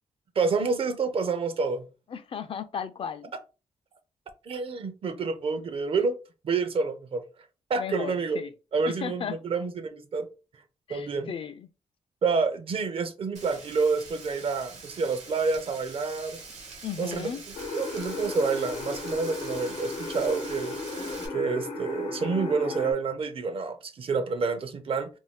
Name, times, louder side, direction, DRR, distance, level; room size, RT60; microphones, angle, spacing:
voice 1, 0.4-1.9 4.4-6.2 6.4-7.2 7.7-8.4 8.7-10.3 10.9-11.3 12.2-16.4 17.0-17.3 17.7-20.8 21.3-25.1, right 4 dB, 50° right, 0.5 m, -28 dB
voice 2, 2.1-3.3 7.8-8.5 8.9-9.4 10.9-11.7 16.8-17.4, left 7 dB, 50° left, 0.4 m, -35 dB
Frying (food), 13.3-21.3, right 4 dB, 80° right, 1.0 m, -44 dB
sound 1, 17.5-22.9, left 3 dB, 80° left, 0.9 m, -35 dB
2.5 x 2.3 x 3.5 m
wide cardioid pair, 115°, 12 cm